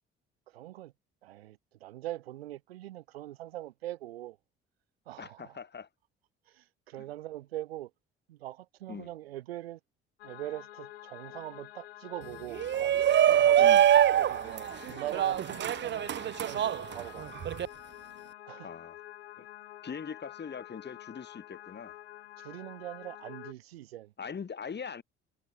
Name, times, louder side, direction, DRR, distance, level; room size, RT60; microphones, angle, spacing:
voice 1, 0.5-0.9 1.2-4.4 5.1-5.6 6.5-7.9 8.3-9.8 10.2-12.9 13.3-13.7 14.2-17.4 18.5-18.7 22.4-24.1, right 14 dB, 75° right, 7.8 m, -42 dB
voice 2, 5.2-5.9 8.9-9.1 13.6-13.9 18.6-19.0 19.4-19.5 19.8-22.0 24.2-25.0, left 6 dB, 35° left, 3.7 m, -41 dB
sound 1, 10.2-23.5, left 14 dB, 75° left, 4.6 m, -48 dB
Shout, 12.5-17.7, right 11 dB, 35° right, 0.7 m, -24 dB
figure-of-eight pair, 50°, 31 cm